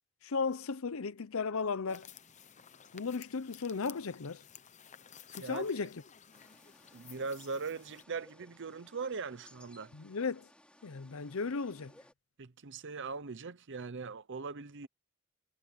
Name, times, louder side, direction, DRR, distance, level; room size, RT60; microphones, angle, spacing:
voice 1, 0.2-2.1 2.9-4.4 5.3-5.9 9.9-10.5 10.8-11.9, left 4 dB, 65° left, 0.7 m, -35 dB
sound 1, 1.9-8.0, left 8 dB, 35° left, 0.9 m, -55 dB
voice 2, 5.3-5.7 6.9-9.9 12.4-14.9, right 4 dB, 55° right, 0.8 m, -40 dB
sound 2, 6.3-12.1, left 1 dB, 5° left, 5.4 m, -61 dB
head